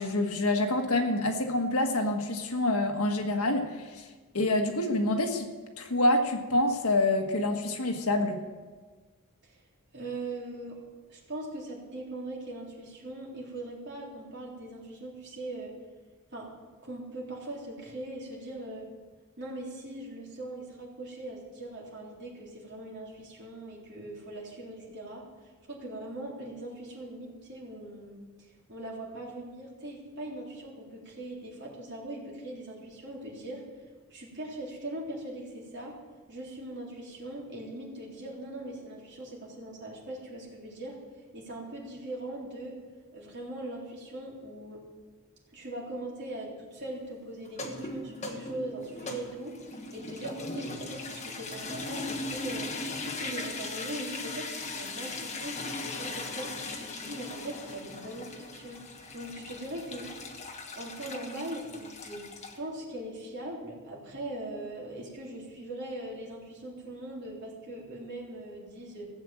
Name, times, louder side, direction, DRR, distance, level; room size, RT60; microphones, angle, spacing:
voice 1, 0.0-4.0 4.3-5.5 5.8-8.4, left 2 dB, 75° left, 4 dB, 1.5 m, -27 dB
voice 2, 9.9-10.8 11.1-15.7 16.3-16.5 16.8-18.9 19.4-25.2 25.7-33.6 34.1-35.9 36.3-41.0 41.3-42.7 43.1-44.8 45.5-52.7 53.0-56.5 56.9-58.8 59.1-60.1 60.7-62.2 62.6-69.1, right 1 dB, 50° right, -4 dB, 3.7 m, -40 dB
sound 1, 47.5-62.6, left 2 dB, 30° left, 1.4 m, -39 dB
16.0 x 7.5 x 7.7 m, 1.4 s
head